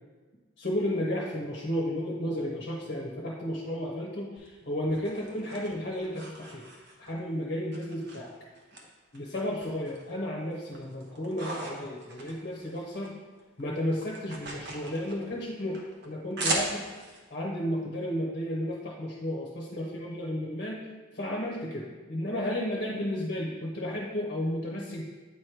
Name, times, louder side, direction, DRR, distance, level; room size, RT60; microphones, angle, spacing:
voice 1, 0.6-6.7 7.0-8.3 9.1-13.2 13.6-16.9 17.3-20.8 21.1-25.0, left 1 dB, 45° left, -2 dB, 0.9 m, -33 dB
sound 1, 4.4-7.2 7.7-8.8 9.1-10.2 10.5-13.1 13.4-17.2, right 2 dB, 55° right, 1.0 m, -38 dB
8.5 x 3.1 x 4.9 m, 1.3 s
head